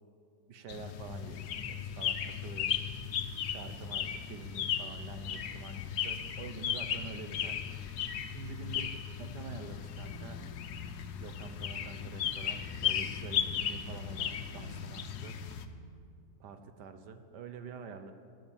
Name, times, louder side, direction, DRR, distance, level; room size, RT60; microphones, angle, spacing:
voice 1, 0.5-2.8 3.5-7.6 8.3-8.9 9.2-10.4 11.2-15.4 16.4-18.1, right 5 dB, 85° right, 9 dB, 1.7 m, -47 dB
sound 1, 0.7-15.7, left 9 dB, 75° left, 1.3 m, -36 dB
15.5 x 11.5 x 7.4 m, 2.4 s
omnidirectional pair, 1.8 m